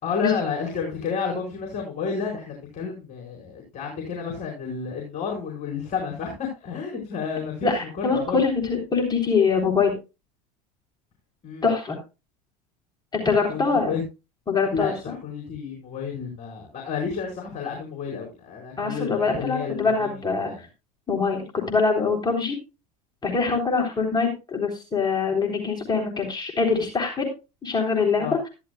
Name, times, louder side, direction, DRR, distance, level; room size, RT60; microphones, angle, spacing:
voice 1, 0.0-8.4 11.4-11.6 13.5-14.0 14.7-14.9 15.2-20.1 20.4-20.6 28.2-28.4, left 6 dB, 40° left, 0 dB, 5.2 m, -31 dB
voice 2, 7.6-9.9 11.6-12.0 13.1-13.9 14.5-15.1 18.8-20.7 21.1-22.6 23.2-27.3 27.6-28.5, left 4 dB, 20° left, 1 dB, 3.5 m, -24 dB
14.0 x 12.5 x 2.3 m, 0.28 s
hypercardioid pair, 100°, 20 cm